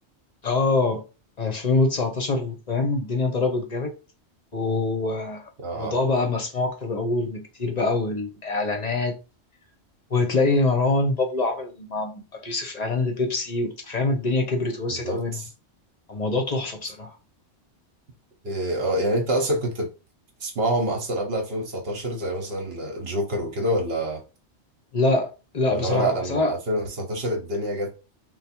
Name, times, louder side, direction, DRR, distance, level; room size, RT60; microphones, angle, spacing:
voice 1, 0.4-1.0 1.4-3.9 4.5-5.5 5.8-9.2 10.1-15.4 16.1-17.2 24.9-25.3 25.5-26.5, left 3 dB, 45° left, 0.7 m, -24 dB
voice 2, 5.6-5.9 14.9-15.5 18.4-19.9 20.4-24.2 25.7-27.9, right 1 dB, 60° right, 1.1 m, -26 dB
3.4 x 2.1 x 4.3 m
omnidirectional pair, 1.2 m